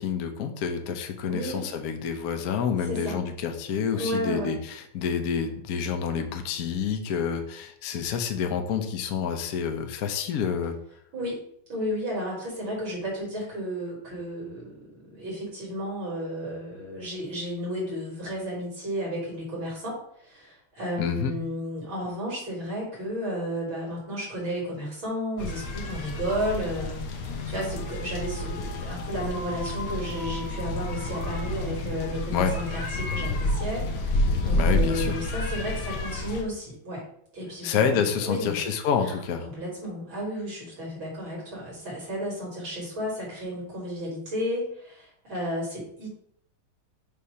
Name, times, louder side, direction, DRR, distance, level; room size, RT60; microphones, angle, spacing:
voice 1, 0.0-10.7 21.0-21.3 32.3-32.5 34.6-35.1 37.6-39.5, left 7 dB, 55° left, 6 dB, 1.0 m, -28 dB
voice 2, 1.3-1.7 2.9-3.2 3.9-4.5 11.1-11.4 11.7-37.0 37.3-38.5 39.0-39.2 39.4-46.1, equal, 65° right, -6 dB, 4.2 m, -33 dB
sound 1, 25.4-36.4, left 1 dB, 85° left, 1.9 m, -29 dB
7.4 x 3.4 x 5.6 m, 0.67 s
omnidirectional pair, 2.4 m